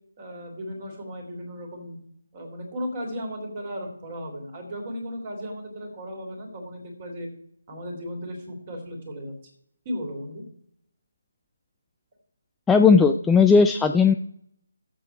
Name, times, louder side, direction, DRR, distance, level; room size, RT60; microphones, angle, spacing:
voice 1, 0.2-2.0 2.3-7.3 7.7-9.3 9.8-10.4, equal, 30° right, 3 dB, 3.3 m, -35 dB
voice 2, 12.7-14.1, left 5 dB, 5° left, 5 dB, 0.3 m, -16 dB
12.5 x 7.7 x 4.7 m, 0.68 s
figure-of-eight pair, 150°, 0 cm